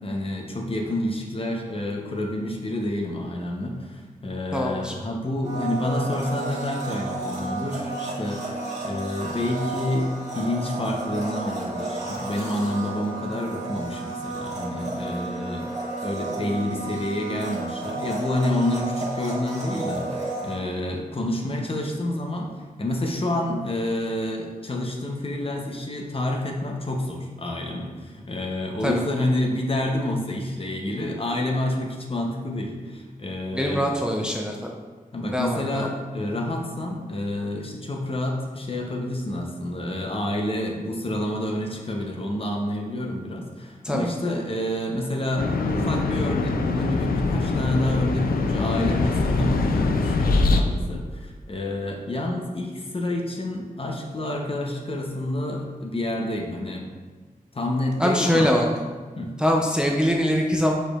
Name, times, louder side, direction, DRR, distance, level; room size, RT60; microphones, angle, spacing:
voice 1, 0.0-10.1 10.3-15.7 16.0-22.5 22.8-33.9 35.1-56.9 57.5-58.5 59.2-59.4, left 1 dB, 40° left, 1 dB, 0.7 m, -28 dB
voice 2, 4.5-4.9 28.8-29.0 33.5-34.8 35.3-35.9 43.8-44.1 58.0-58.7 59.4-60.7, equal, 5° right, 0 dB, 0.4 m, -23 dB
Domestic sounds home sounds, 5.4-20.6, right 2 dB, 50° right, 1.3 m, -32 dB
sound 1, 45.4-50.6, left 3 dB, 80° left, 0.4 m, -23 dB
4.8 x 4.4 x 2.4 m, 1.4 s
wide cardioid pair, 70°, 15 cm